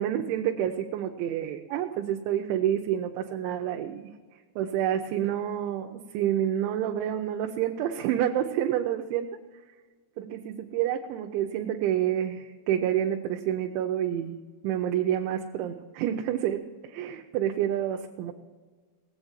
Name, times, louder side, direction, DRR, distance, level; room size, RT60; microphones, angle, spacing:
voice 1, 0.0-4.1 4.6-9.3 10.2-14.4 14.6-18.3, right 10 dB, 90° right, 3 dB, 3.1 m, -28 dB
19.0 x 8.1 x 7.2 m, 1.4 s
omnidirectional pair, 5.1 m